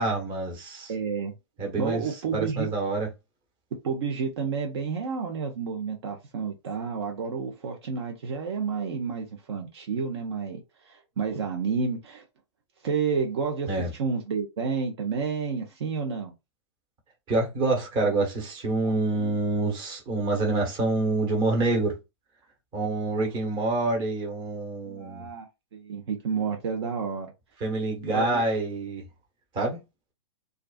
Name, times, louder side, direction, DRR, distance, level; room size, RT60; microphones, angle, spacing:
voice 1, 0.0-0.9 1.6-2.0 2.3-3.1 13.7-13.9 17.3-22.0 22.7-25.3 27.6-29.1 29.5-29.8, right 2 dB, 30° right, 1.1 m, -27 dB
voice 2, 0.9-1.3 1.8-2.7 3.8-12.2 12.8-16.3 18.8-19.3 23.2-23.3 24.9-27.3 28.0-28.5, right 5 dB, 65° right, 0.7 m, -30 dB
2.4 x 2.3 x 2.3 m
hypercardioid pair, 125°, 15 cm